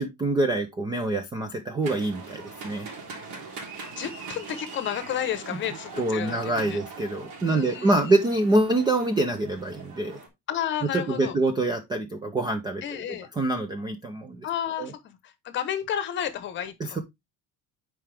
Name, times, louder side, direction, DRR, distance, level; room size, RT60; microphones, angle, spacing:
voice 1, 0.0-2.9 6.0-10.2 10.9-12.8 13.4-14.5 14.8-14.9 16.8-17.0, right 2 dB, 10° right, 0.4 m, -25 dB
sound 1, 1.8-10.3, right 4 dB, 55° right, 3.0 m, -41 dB
voice 2, 3.9-6.8 7.5-8.1 10.5-11.4 12.8-13.3 14.4-17.0, left 10 dB, 30° left, 0.9 m, -32 dB
8.9 x 4.8 x 3.3 m
cardioid pair, 175°, 36 cm